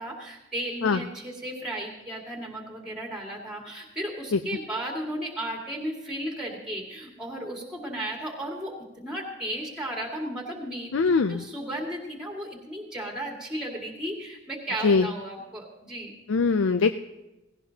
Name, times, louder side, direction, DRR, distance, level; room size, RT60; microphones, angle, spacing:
voice 1, 0.0-10.9 11.3-16.2, right 1 dB, 5° right, 0 dB, 2.0 m, -34 dB
voice 2, 10.9-11.4 14.8-15.1 16.3-16.9, left 4 dB, 70° left, 9 dB, 0.4 m, -21 dB
17.0 x 17.0 x 2.8 m, 0.97 s
head